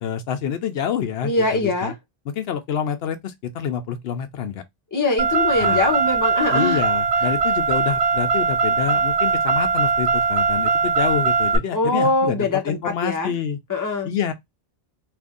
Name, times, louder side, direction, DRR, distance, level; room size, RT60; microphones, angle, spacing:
voice 1, 0.0-1.9 2.3-4.6 5.6-5.8 6.5-13.6 14.0-14.3, left 8 dB, 80° left, 0.8 m, -27 dB
voice 2, 1.2-1.9 4.9-6.8 11.7-13.3 13.7-14.1, left 2 dB, 20° left, 0.8 m, -22 dB
Car, 5.2-11.6, right 5 dB, 45° right, 0.6 m, -20 dB
2.6 x 2.6 x 3.6 m
omnidirectional pair, 1.0 m